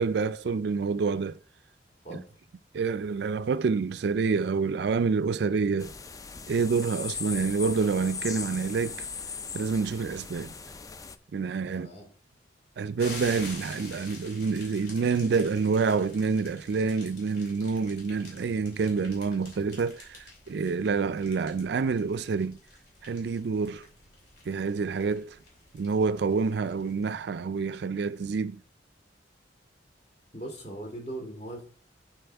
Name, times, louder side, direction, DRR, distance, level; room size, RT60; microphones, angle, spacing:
voice 1, 0.0-1.4 2.7-5.9 6.5-9.0 9.5-10.5 11.3-11.9 12.8-22.6 23.0-23.8 24.5-25.4 25.7-28.6, right 5 dB, 65° right, 0.4 m, -27 dB
voice 2, 2.0-2.4 11.7-12.1 30.3-31.6, right 1 dB, 40° left, 2.5 m, -39 dB
sound 1, 5.8-11.2, left 5 dB, 20° left, 0.3 m, -39 dB
sound 2, 13.0-27.2, left 3 dB, 60° left, 3.0 m, -48 dB
11.0 x 4.8 x 3.4 m
head